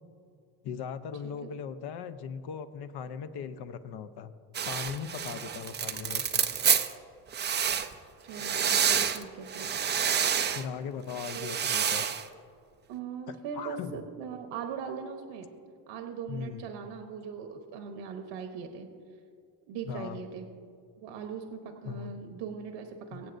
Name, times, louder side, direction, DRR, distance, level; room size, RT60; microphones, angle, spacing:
voice 1, 0.6-4.3 4.6-6.4 10.5-12.0 13.6-14.0 16.3-16.6 19.8-20.2 21.8-22.1, left 7 dB, 55° left, 11 dB, 0.8 m, -38 dB
sound 1, 4.5-6.9 7.3-7.9 8.3-9.2 9.5-10.6 11.1-12.2, right 7 dB, 25° right, 0.4 m, -28 dB
voice 2, 8.2-9.7 11.3-11.6 12.9-15.5 15.9-18.9 19.7-20.5 21.0-23.3, right 6 dB, 65° right, 4 dB, 1.1 m, -40 dB
23.5 x 8.0 x 2.6 m, 2.4 s
cardioid pair, 115°, 48 cm